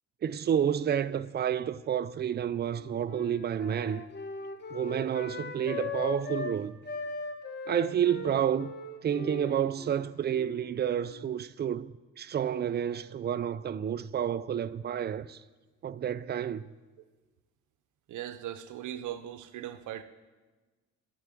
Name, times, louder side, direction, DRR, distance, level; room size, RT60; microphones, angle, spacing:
voice 1, 0.2-4.0 4.7-6.8 7.7-8.7 9.0-15.4 15.8-16.7, right 9 dB, 35° right, 0.4 m, -30 dB
Wind instrument woodwind instrument, 2.5-6.5 6.8-11.3, left 5 dB, 35° left, 1.0 m, -40 dB
voice 2, 18.1-20.0, right 11 dB, 80° right, 0.7 m, -39 dB
11.0 x 4.6 x 8.2 m
cardioid pair, 90°, 30 cm